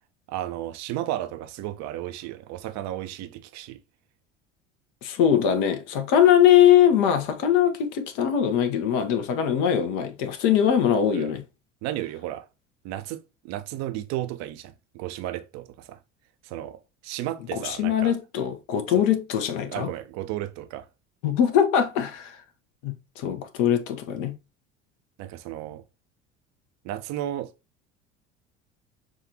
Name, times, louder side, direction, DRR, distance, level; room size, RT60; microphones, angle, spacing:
voice 1, 0.3-3.8 11.1-11.3 11.8-12.5 12.8-16.0 16.4-18.1 18.9-19.1 19.7-20.9 25.2-25.8 26.8-27.5, right 13 dB, 50° right, 0.6 m, -33 dB
voice 2, 5.0-11.4 17.5-19.9 21.2-22.4 22.8-24.4, left 9 dB, 60° left, 1.0 m, -21 dB
6.1 x 2.5 x 2.8 m
figure-of-eight pair, 65°, 35 cm